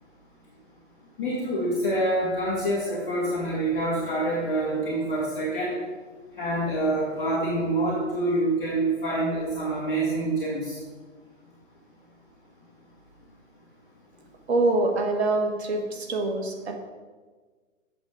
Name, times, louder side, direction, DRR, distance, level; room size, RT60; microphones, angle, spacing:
voice 1, 1.2-5.8 6.4-10.8, right 1 dB, 5° right, -12 dB, 0.4 m, -26 dB
voice 2, 14.5-16.7, right 2 dB, 55° right, 3 dB, 1.7 m, -25 dB
7.8 x 5.9 x 5.2 m, 1.4 s
hypercardioid pair, 140°, 38 cm